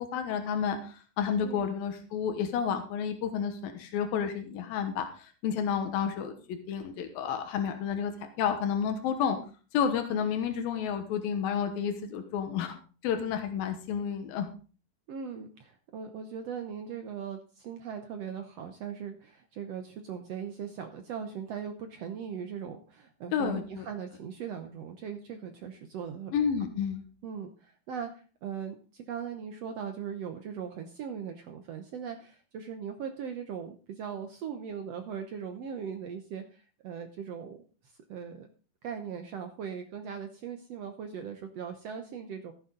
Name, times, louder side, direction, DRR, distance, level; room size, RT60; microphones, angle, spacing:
voice 1, 0.0-8.1 8.4-9.4 9.7-12.8 13.0-14.5 23.3-23.9 26.3-27.0, left 7 dB, 90° left, 6 dB, 2.9 m, -30 dB
voice 2, 1.4-1.8 15.1-26.3 27.2-37.6 37.8-38.5 38.8-42.5, right 7 dB, 75° right, 6 dB, 1.5 m, -39 dB
15.0 x 8.7 x 3.8 m, 0.38 s
omnidirectional pair, 4.1 m